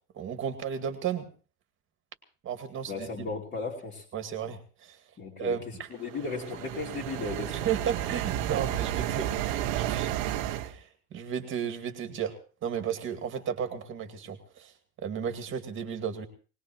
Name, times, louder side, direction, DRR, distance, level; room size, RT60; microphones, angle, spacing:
voice 1, 0.1-1.3 2.4-3.1 4.1-5.0 5.4-5.9 7.5-10.1 10.4-12.3 12.6-14.7 15.0-16.3, right 8 dB, 25° right, 7 dB, 2.2 m, -34 dB
voice 2, 2.9-4.0 5.2-5.6 5.9-7.7, left 3 dB, 20° left, -6 dB, 2.9 m, -35 dB
sound 1, 6.0-10.7, right 12 dB, 55° right, 1.3 m, -32 dB
21.0 x 20.0 x 3.1 m, 0.37 s
supercardioid pair, 150°, 47 cm